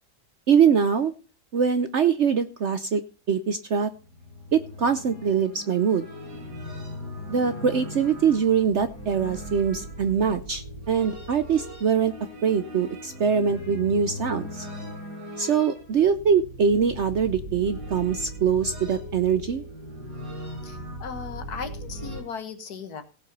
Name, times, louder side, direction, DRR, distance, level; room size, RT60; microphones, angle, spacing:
voice 1, 0.5-1.1 1.5-3.0 3.3-3.9 4.5-6.0 7.3-12.1 12.4-14.7 15.4-19.6, right 7 dB, 55° right, 11 dB, 0.8 m, -23 dB
sound 1, 3.9-22.2, equal, 80° right, 5.6 m, -39 dB
voice 2, 20.6-23.0, left 6 dB, 65° left, 9 dB, 1.9 m, -37 dB
17.0 x 5.8 x 5.3 m, 0.34 s
omnidirectional pair, 1.8 m